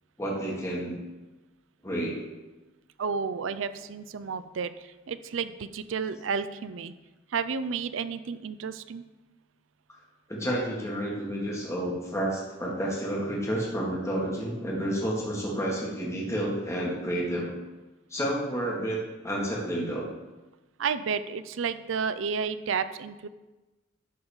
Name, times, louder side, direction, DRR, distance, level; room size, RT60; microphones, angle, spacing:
voice 1, 0.2-1.0 1.8-2.2 10.3-17.5 18.1-20.1, right 1 dB, 15° left, -4 dB, 1.7 m, -30 dB
voice 2, 3.0-6.9 7.3-9.0 20.8-23.3, right 6 dB, 90° right, 13 dB, 0.5 m, -31 dB
11.5 x 4.0 x 7.1 m, 1.1 s
head